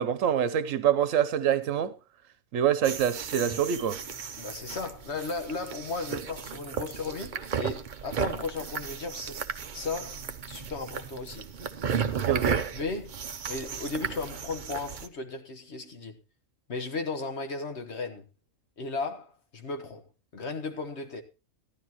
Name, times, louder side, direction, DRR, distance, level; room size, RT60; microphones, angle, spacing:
voice 1, 0.0-1.9 2.5-4.0 12.1-12.6, right 9 dB, 80° right, 1.2 m, -26 dB
sound 1, 2.8-15.1, right 7 dB, 45° right, 0.8 m, -35 dB
voice 2, 4.4-9.4 9.7-11.5 12.5-13.2 13.5-16.2 16.7-18.2 18.8-20.0 20.3-21.2, left 3 dB, 60° left, 1.5 m, -35 dB
14.5 x 12.0 x 3.0 m
omnidirectional pair, 1.3 m